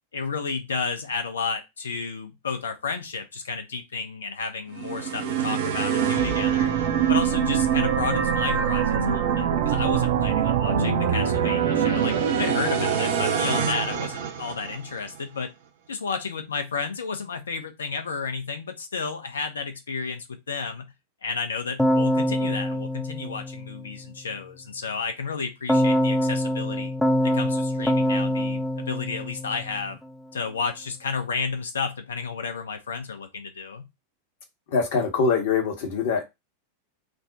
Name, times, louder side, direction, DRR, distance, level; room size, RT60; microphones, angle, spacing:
voice 1, 0.1-6.7 7.1-15.5 15.9-20.9 21.2-26.9 27.2-30.0 30.3-33.9, left 5 dB, 70° left, 7 dB, 0.6 m, -32 dB
sound 1, 4.8-15.0, right 8 dB, 55° right, 0.5 m, -24 dB
Keyboard (musical), 21.8-24.1 25.7-30.0, equal, ahead, 0.5 m, -24 dB
voice 2, 34.7-36.2, left 5 dB, 55° left, 3 dB, 1.0 m, -23 dB
3.3 x 2.1 x 2.7 m, 0.22 s
figure-of-eight pair, 90°, 0 cm